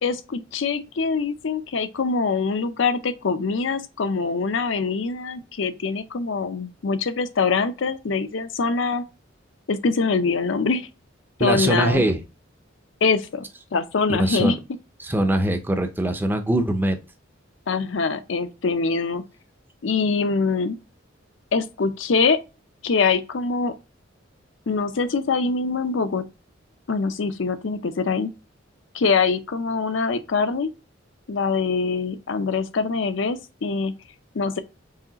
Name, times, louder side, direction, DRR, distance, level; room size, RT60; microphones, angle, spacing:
voice 1, 0.0-9.1 9.7-10.9 11.4-12.0 13.0-13.5 13.7-14.6 17.7-19.2 19.8-20.8 21.5-22.4 22.8-23.7 24.7-26.3 26.9-28.3 28.9-30.7 31.3-33.9 34.3-34.6, left 4 dB, 70° left, 0.5 m, -24 dB
voice 2, 11.4-12.2 14.1-14.5 15.0-17.0, right 1 dB, 10° right, 0.6 m, -22 dB
4.8 x 3.1 x 2.8 m
head